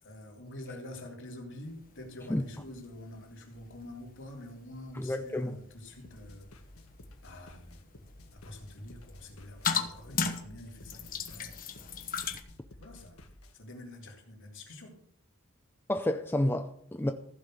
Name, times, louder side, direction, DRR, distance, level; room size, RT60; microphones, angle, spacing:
voice 1, 0.0-6.5 7.2-7.8 8.3-11.6 12.8-13.2 13.5-15.0, left 1 dB, 60° left, 3.2 m, -46 dB
sound 1, 1.6-12.4, left 6 dB, 40° left, 1.1 m, -39 dB
voice 2, 4.9-5.6 15.9-17.1, left 1 dB, 10° left, 0.6 m, -30 dB
sound 2, 6.0-13.5, left 1 dB, 75° left, 1.7 m, -53 dB
15.5 x 5.3 x 7.8 m
head